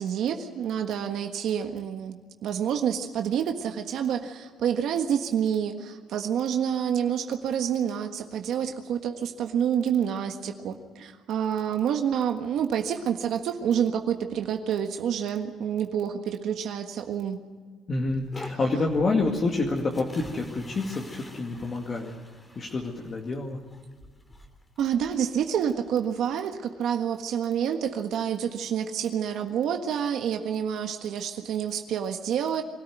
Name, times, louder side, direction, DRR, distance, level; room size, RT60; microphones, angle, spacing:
voice 1, 0.0-17.4 24.8-32.6, right 8 dB, 70° right, 5 dB, 1.5 m, -28 dB
voice 2, 17.9-22.1 22.6-23.6, left 3 dB, 35° left, 0 dB, 2.2 m, -28 dB
sound 1, 18.1-26.3, left 1 dB, 15° left, 2.7 m, -48 dB
24.0 x 13.5 x 9.3 m, 1.5 s
cardioid pair, 115°, 0 cm